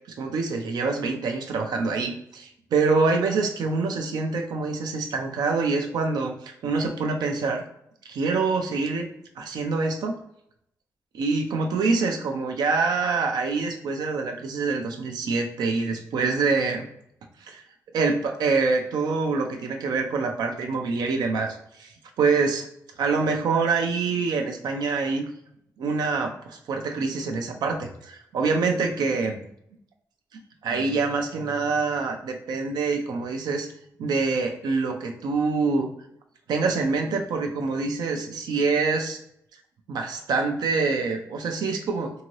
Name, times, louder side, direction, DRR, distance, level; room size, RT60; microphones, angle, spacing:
voice 1, 0.2-7.6 8.1-9.1 9.4-10.2 11.2-16.9 17.5-17.6 17.9-21.9 22.2-22.6 23.0-25.2 25.8-29.5 30.6-33.7 34.0-35.9 36.5-39.2 39.9-42.1, right 4 dB, 85° right, 4 dB, 0.5 m, -25 dB
2.7 x 2.7 x 3.1 m, 0.74 s
cardioid pair, 75°, 7 cm